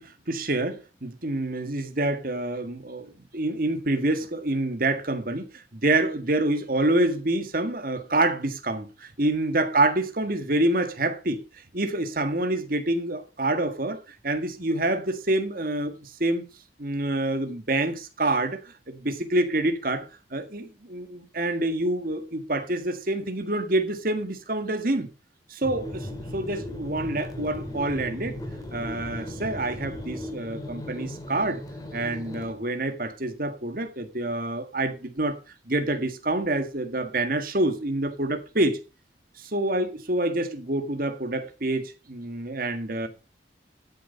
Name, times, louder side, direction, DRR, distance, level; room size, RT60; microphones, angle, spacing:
voice 1, 0.0-11.4 11.7-16.4 16.8-25.1 25.5-28.4 28.7-31.6 31.9-35.4 35.7-38.8 39.4-43.1, right 2 dB, 50° right, 1.7 m, -27 dB
sound 1, 25.6-32.5, left 1 dB, 20° left, 2.3 m, -37 dB
13.0 x 6.9 x 5.3 m
head